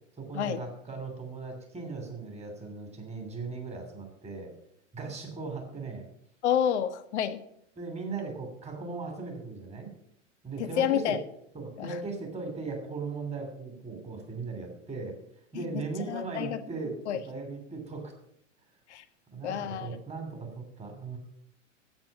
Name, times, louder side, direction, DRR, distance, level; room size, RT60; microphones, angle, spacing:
voice 1, 0.2-4.5 4.9-6.1 7.8-9.9 10.4-11.2 11.5-15.1 15.5-18.1 19.3-21.2, right 4 dB, 15° right, 4 dB, 2.9 m, -38 dB
voice 2, 6.4-7.4 10.6-11.2 11.8-12.0 15.5-16.6 17.1-17.2 18.9-19.0 19.4-20.0, left 9 dB, 65° left, 11 dB, 1.1 m, -29 dB
9.0 x 8.0 x 7.2 m, 0.72 s
hypercardioid pair, 95°, 36 cm